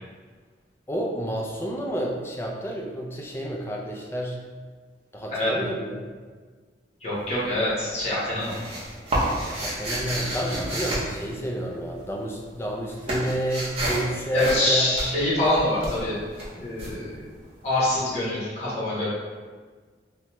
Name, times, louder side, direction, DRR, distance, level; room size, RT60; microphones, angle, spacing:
voice 1, 0.9-4.4 5.1-6.1 9.5-15.0, equal, 15° left, -1 dB, 0.3 m, -30 dB
voice 2, 7.0-8.5 14.3-16.2 16.6-17.2 17.6-19.1, left 1 dB, 40° left, -9 dB, 1.1 m, -25 dB
sound 1, 7.1-7.7 8.0-12.0 12.3-17.9, right 1 dB, 35° right, 0.7 m, -30 dB
2.9 x 2.2 x 3.0 m, 1.5 s
head